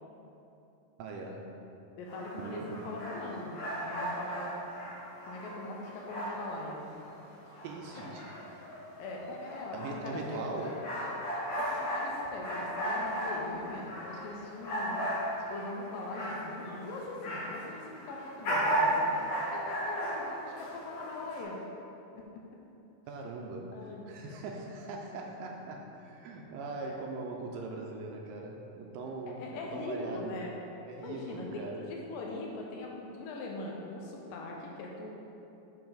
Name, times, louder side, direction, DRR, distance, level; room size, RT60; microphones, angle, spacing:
voice 1, 1.0-1.5 2.4-2.8 7.6-8.3 9.7-10.7 23.1-30.4 30.8-31.8, right 3 dB, 80° right, 1 dB, 2.2 m, -41 dB
voice 2, 2.0-4.5 5.2-6.8 9.0-10.7 11.5-15.0 15.5-19.1 19.5-21.6 22.1-22.4 23.7-24.4 26.8-27.0 29.3-30.5 31.0-35.1, left 2 dB, 80° left, -1 dB, 2.3 m, -41 dB
sound 1, 2.1-6.7 7.1-17.7 17.9-21.4, equal, 55° left, 2.4 m, -35 dB
8.7 x 4.1 x 3.9 m, 2.9 s
omnidirectional pair, 4.2 m